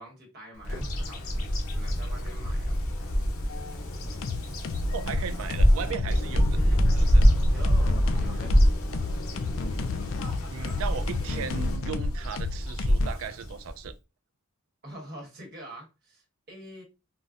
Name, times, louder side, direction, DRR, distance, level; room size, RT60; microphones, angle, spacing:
voice 1, 0.0-2.8 6.5-7.0 7.4-8.5 14.8-16.8, equal, 50° right, 1.1 m, -46 dB
Bird vocalization bird call bird song, 0.6-13.9, equal, 90° left, 0.7 m, -25 dB
sound 1, 3.5-3.8 4.2-13.1, left 5 dB, 60° left, 0.3 m, -33 dB
voice 2, 4.9-6.4 7.0-7.2 10.5-13.9, right 7 dB, 75° right, 0.3 m, -36 dB
3.8 x 2.1 x 2.4 m
head